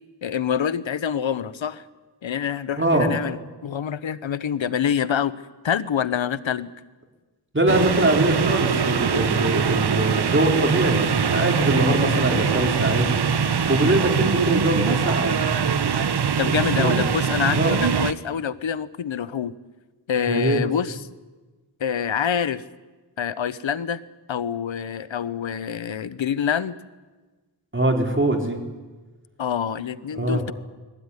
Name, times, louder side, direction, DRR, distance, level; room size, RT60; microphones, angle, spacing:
voice 1, 0.2-1.8 2.2-3.4 3.6-5.3 5.6-6.7 16.4-19.5 20.1-21.0 21.8-22.6 23.2-24.0 24.3-26.8 29.4-30.5, left 8 dB, 80° left, 17 dB, 0.9 m, -26 dB
voice 2, 2.8-3.1 7.5-13.3 13.7-15.4 16.5-17.1 17.5-17.8 20.3-20.6 27.7-28.6 30.1-30.4, right 1 dB, 25° right, 3 dB, 3.9 m, -23 dB
sound 1, 7.7-18.1, right 6 dB, 60° right, 1.0 m, -22 dB
20.5 x 17.0 x 9.7 m, 1.3 s
wide cardioid pair, 50°, 45 cm